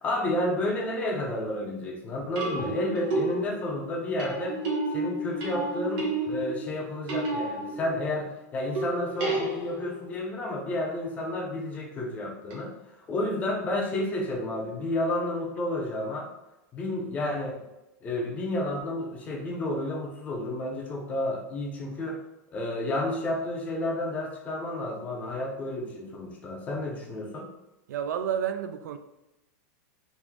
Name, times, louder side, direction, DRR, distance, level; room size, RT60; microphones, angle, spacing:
voice 1, 0.0-4.6 4.9-12.7 13.1-16.3 16.7-17.6 18.0-22.2 22.5-27.5, left 1 dB, 15° left, 0 dB, 0.5 m, -31 dB
sound 1, 0.6-1.0 2.4-8.3 8.7-10.1 12.5-12.6, right 2 dB, 35° right, 0.9 m, -31 dB
voice 2, 27.9-29.0, right 9 dB, 80° right, 8 dB, 0.4 m, -30 dB
3.5 x 2.5 x 3.1 m, 0.95 s
supercardioid pair, 170°, 9 cm